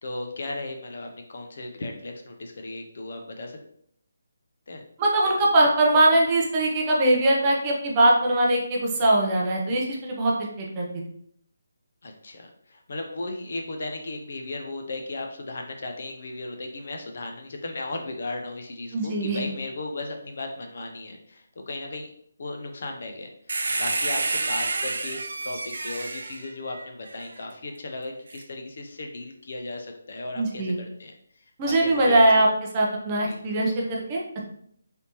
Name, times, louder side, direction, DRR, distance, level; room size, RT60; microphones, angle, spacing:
voice 1, 0.0-3.6 4.7-4.8 12.0-22.1 22.4-23.3 23.8-31.1 31.7-32.5 33.3-33.4, left 2 dB, 50° left, 3 dB, 0.6 m, -36 dB
voice 2, 5.0-10.9 18.9-19.4 30.3-30.8 31.6-32.5 32.7-34.2, right 1 dB, 20° right, -2 dB, 0.5 m, -21 dB
sound 1, 23.5-27.3 28.3-28.4, right 3 dB, 70° right, 0.4 m, -29 dB
3.4 x 2.7 x 2.9 m, 0.66 s
hypercardioid pair, 170°, 0 cm